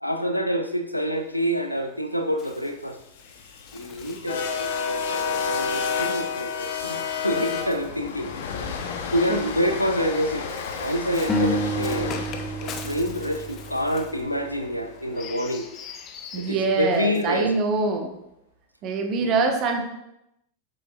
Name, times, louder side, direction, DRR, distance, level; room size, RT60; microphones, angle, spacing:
voice 1, 0.0-3.0 3.7-8.3 9.1-10.5 10.8-12.2 12.6-15.6 16.4-17.5 19.2-19.3, equal, 90° left, 6 dB, 0.6 m, -27 dB
Bird, 1.1-7.7 8.6-17.4, left 6 dB, 30° left, 0.8 m, -45 dB
sound 1, 3.0-15.2, left 6 dB, 55° left, 0.9 m, -31 dB
sound 2, 11.3-14.5, equal, 10° left, 0.9 m, -29 dB
voice 2, 16.3-18.1 18.8-19.9, right 4 dB, 35° right, 4 dB, 1.1 m, -24 dB
7.8 x 6.6 x 2.5 m, 0.84 s
figure-of-eight pair, 90°, 0 cm